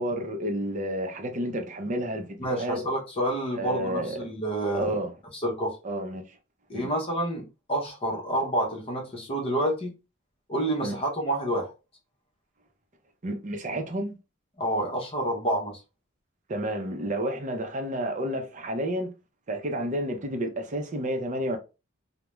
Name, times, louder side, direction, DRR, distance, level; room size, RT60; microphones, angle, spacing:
voice 1, 0.0-2.8 3.6-4.2 4.7-5.1 5.8-6.4 6.7-6.9 10.8-11.0 13.2-14.2 16.5-19.1 19.5-21.6, right 1 dB, 40° right, 0.6 m, -30 dB
voice 2, 2.4-5.0 5.4-5.8 6.7-9.9 10.5-11.7 14.6-15.8, right 1 dB, 30° left, 0.7 m, -28 dB
2.4 x 2.1 x 3.0 m
head